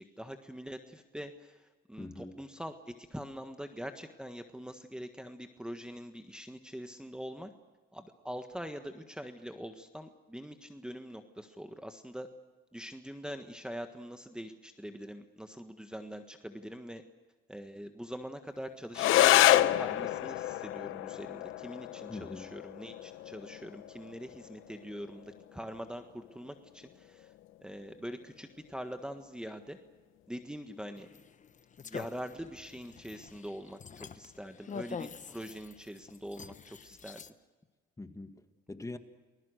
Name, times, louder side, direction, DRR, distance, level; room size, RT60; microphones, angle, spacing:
voice 1, 0.0-7.5 7.9-12.3 12.7-17.0 17.5-27.3 27.6-29.8 30.3-31.1 31.8-37.2, equal, 5° right, 7 dB, 1.5 m, -44 dB
voice 2, 2.0-2.4 22.1-22.5 38.0-39.0, left 2 dB, 15° left, 7 dB, 1.8 m, -43 dB
sound 1, 18.9-27.9, left 14 dB, 85° left, 0.8 m, -29 dB
sound 2, 31.0-37.3, left 6 dB, 40° left, 1.0 m, -46 dB
29.5 x 20.5 x 6.5 m, 1.3 s
cardioid pair, 90°, 20 cm